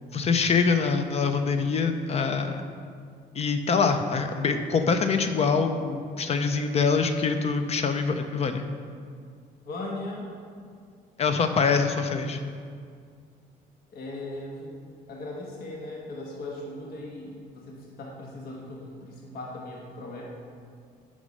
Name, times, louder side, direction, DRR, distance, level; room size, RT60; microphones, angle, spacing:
voice 1, 0.1-2.6 3.3-8.7 11.2-12.4, left 5 dB, 40° left, 7 dB, 0.6 m, -24 dB
voice 2, 9.6-10.3 13.9-14.7 15.1-20.2, left 2 dB, 65° left, -2 dB, 1.3 m, -38 dB
6.1 x 5.4 x 5.3 m, 2.2 s
cardioid pair, 110°, 17 cm